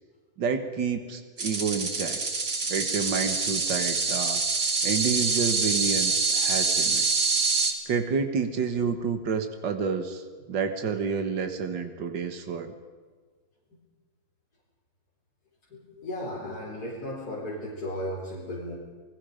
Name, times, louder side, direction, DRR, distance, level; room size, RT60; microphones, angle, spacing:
voice 1, 0.4-2.2 2.7-4.4 4.8-7.3 7.9-12.7, right 5 dB, 80° right, 7 dB, 2.2 m, -29 dB
sound 1, 1.4-7.7, right 4 dB, 40° right, 2.4 m, -26 dB
voice 2, 15.7-18.7, left 1 dB, 55° left, -6 dB, 4.9 m, -35 dB
29.5 x 20.0 x 5.2 m, 1.5 s
omnidirectional pair, 2.0 m